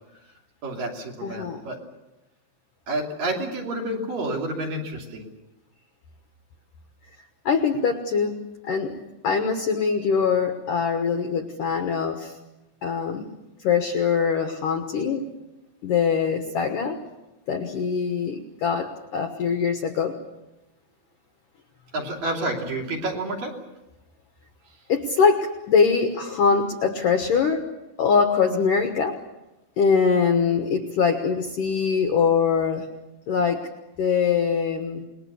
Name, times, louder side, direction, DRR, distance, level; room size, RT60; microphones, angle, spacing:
voice 1, 0.6-1.8 2.9-5.3 21.9-23.5, right 1 dB, 50° right, 0 dB, 4.4 m, -29 dB
voice 2, 1.2-1.6 7.5-8.4 8.6-8.9 9.2-12.3 12.8-13.2 13.6-15.3 15.8-17.0 17.5-20.2 24.9-27.7 28.0-29.2 29.8-32.9 33.3-33.7 34.0-35.0, left 6 dB, 70° left, 5 dB, 2.2 m, -23 dB
28.0 x 21.0 x 7.0 m, 0.99 s
omnidirectional pair, 5.4 m